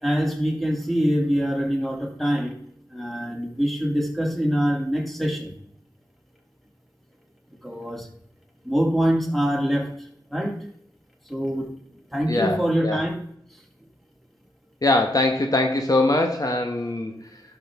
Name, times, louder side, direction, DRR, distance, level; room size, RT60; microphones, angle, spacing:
voice 1, 0.0-2.6 2.9-5.5 7.6-8.1 8.6-9.9 10.3-10.6 11.3-11.7 12.1-13.2, equal, ahead, 0 dB, 2.4 m, -24 dB
voice 2, 12.3-13.0 14.8-17.4, left 2 dB, 45° left, 4 dB, 1.0 m, -22 dB
12.0 x 6.0 x 3.5 m, 0.69 s
wide cardioid pair, 40°, 8 cm